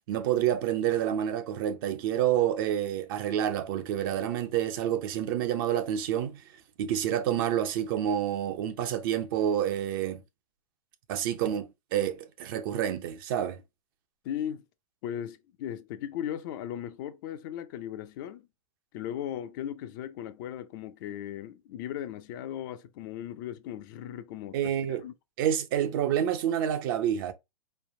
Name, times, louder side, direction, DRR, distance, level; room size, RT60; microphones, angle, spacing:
voice 1, 0.1-6.4 6.8-10.2 11.1-13.6 24.5-25.0 25.4-27.3, right 10 dB, 40° right, 0.7 m, -28 dB
voice 2, 14.2-14.6 15.0-18.5 18.9-25.1, left 10 dB, 40° left, 0.5 m, -37 dB
4.5 x 3.3 x 2.7 m
figure-of-eight pair, 110°, 17 cm